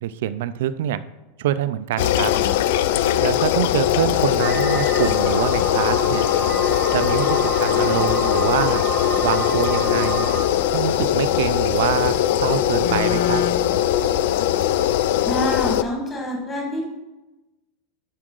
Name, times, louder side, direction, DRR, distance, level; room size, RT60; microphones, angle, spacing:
voice 1, 0.0-1.0 1.4-2.3 3.2-6.3 6.9-8.8 9.2-10.3 10.7-12.1 12.4-13.4, right 11 dB, 65° right, 14 dB, 0.4 m, -25 dB
sound 1, 2.0-15.8, left 11 dB, 55° left, 0.3 m, -20 dB
sound 2, 4.4-10.4, right 4 dB, 15° right, 0.9 m, -30 dB
voice 2, 15.3-16.9, left 1 dB, 15° left, -1 dB, 1.6 m, -26 dB
11.0 x 4.9 x 3.8 m, 1.1 s
supercardioid pair, 180°, 0 cm